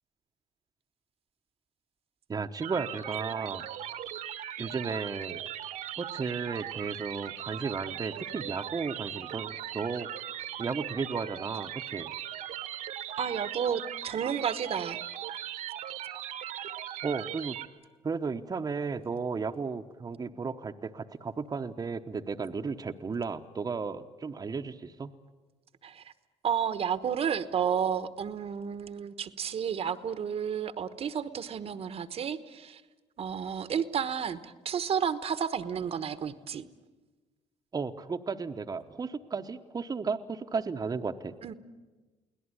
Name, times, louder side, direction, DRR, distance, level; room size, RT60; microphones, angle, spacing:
voice 1, 2.3-3.6 4.6-5.4 6.0-10.1 10.6-12.1 17.0-17.6 18.0-25.1 37.7-41.3, right 5 dB, 30° right, 5 dB, 1.0 m, -34 dB
sound 1, 2.6-17.7, right 11 dB, 75° right, 1.4 m, -39 dB
voice 2, 13.2-15.0 25.8-26.0 26.4-32.8 33.2-36.7 41.4-41.5, right 7 dB, 50° right, 12 dB, 1.1 m, -31 dB
23.0 x 17.5 x 9.7 m, 1.2 s
supercardioid pair, 80°, 13 cm